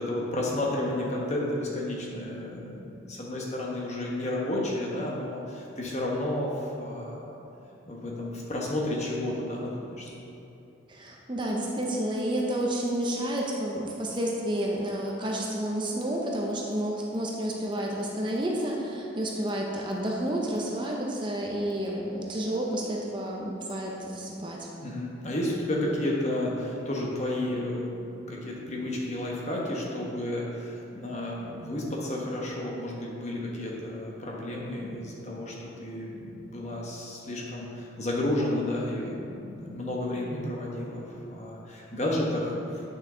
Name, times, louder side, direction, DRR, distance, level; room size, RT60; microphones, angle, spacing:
voice 1, 0.0-7.3 7.9-10.1 24.8-41.0 41.3-42.9, left 1 dB, 35° left, -3 dB, 1.1 m, -32 dB
voice 2, 10.9-24.7, right 1 dB, 25° right, -1 dB, 0.6 m, -30 dB
8.6 x 6.2 x 3.8 m, 2.8 s
head